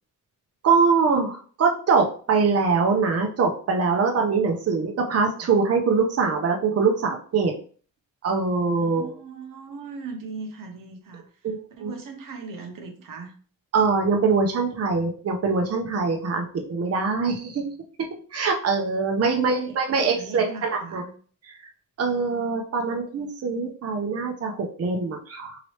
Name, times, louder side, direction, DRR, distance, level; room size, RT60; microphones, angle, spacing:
voice 1, 0.6-7.5 8.2-9.2 11.4-11.9 13.7-17.7 18.3-21.0 21.5-21.6 22.0-25.6, right 4 dB, 50° right, 2 dB, 0.6 m, -23 dB
voice 2, 8.8-11.3 11.8-13.3 19.3-21.1, right 4 dB, 80° right, 3 dB, 0.7 m, -39 dB
3.1 x 2.9 x 2.8 m, 0.43 s
cardioid pair, 95°, 33 cm